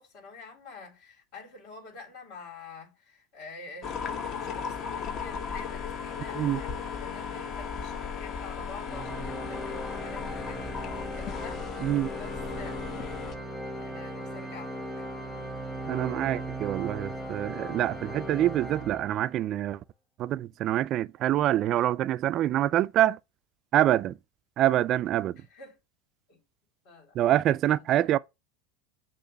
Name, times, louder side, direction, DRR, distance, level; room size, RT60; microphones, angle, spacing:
voice 1, 0.0-15.1 25.3-25.8 26.3-26.4 26.8-27.3 27.7-28.1, left 3 dB, 60° left, 3.6 m, -48 dB
sound 1, 3.8-13.3, left 6 dB, 40° left, 1.2 m, -36 dB
Organ, 8.8-19.5, right 1 dB, 10° left, 1.2 m, -38 dB
voice 2, 15.9-19.8 20.2-23.2 23.7-24.2 24.6-25.4 27.2-28.2, right 13 dB, 40° right, 0.3 m, -25 dB
6.5 x 3.0 x 5.7 m
supercardioid pair, 130°, 0 cm